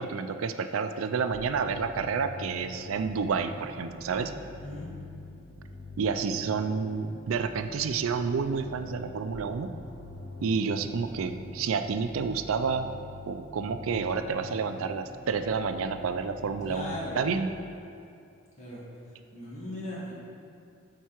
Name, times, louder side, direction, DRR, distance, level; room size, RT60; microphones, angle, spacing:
voice 1, 0.0-4.3 6.0-9.7 10.4-12.9 13.3-17.6, right 5 dB, 90° right, 9 dB, 0.4 m, -29 dB
sound 1, 1.3-17.3, left 2 dB, 65° left, 2.0 m, -45 dB
voice 2, 16.6-17.4 18.6-18.8 19.3-20.1, left 1 dB, 35° left, -7 dB, 2.3 m, -38 dB
13.0 x 4.6 x 4.4 m, 2.5 s
head